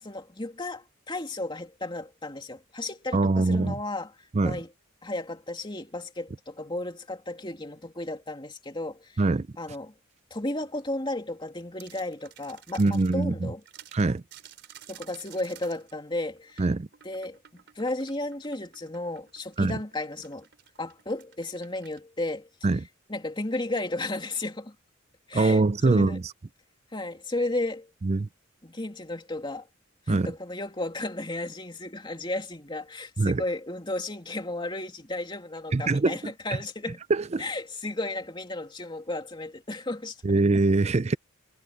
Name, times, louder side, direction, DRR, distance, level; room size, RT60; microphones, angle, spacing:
voice 1, 0.0-4.1 4.4-4.7 5.0-9.2 9.6-9.9 10.3-13.6 14.9-16.6 17.0-17.4 17.7-20.5 20.8-22.5 23.1-24.7 25.3-26.2 26.9-27.9 28.6-29.7 30.1-37.0 37.4-40.2, left 2 dB, 25° left, 2.8 m, -34 dB
voice 2, 3.1-3.7 4.3-4.6 9.2-9.5 12.8-13.5 13.9-14.2 16.6-16.9 19.6-19.7 22.6-22.9 25.3-26.3 28.0-28.3 30.1-30.3 33.2-33.4 35.7-36.3 37.1-37.4 40.2-41.2, right 3 dB, 30° right, 0.5 m, -23 dB
sound 1, 11.8-13.2 13.6-22.0, right 10 dB, 55° right, 4.1 m, -52 dB
head